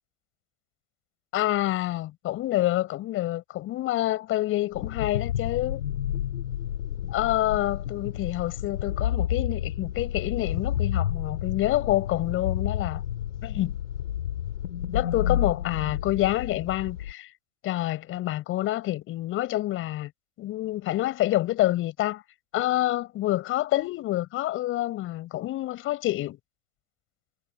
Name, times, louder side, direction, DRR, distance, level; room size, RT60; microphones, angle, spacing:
voice 1, 1.3-5.8 7.1-13.0 13.4-13.8 14.9-17.3 17.6-20.1 20.4-22.2 22.5-26.4, left 15 dB, 30° left, 7.9 m, -27 dB
sound 1, 4.7-17.1, left 11 dB, 65° left, 6.2 m, -30 dB
hypercardioid pair, 120°, 43 cm